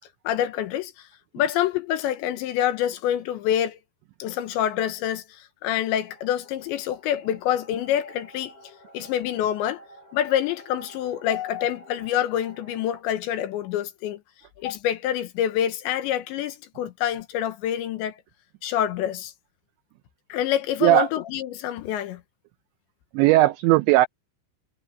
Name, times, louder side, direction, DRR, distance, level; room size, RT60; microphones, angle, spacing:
voice 1, 0.2-1.1 1.3-3.8 4.2-8.5 8.9-9.8 10.1-14.2 14.6-18.2 18.6-19.3 20.3-22.2, left 11 dB, 75° left, 3.2 m, -26 dB
sound 1, 5.9-13.0, right 1 dB, 35° left, 4.8 m, -50 dB
voice 2, 23.1-24.1, right 17 dB, 85° right, 2.6 m, -17 dB
omnidirectional pair, 5.7 m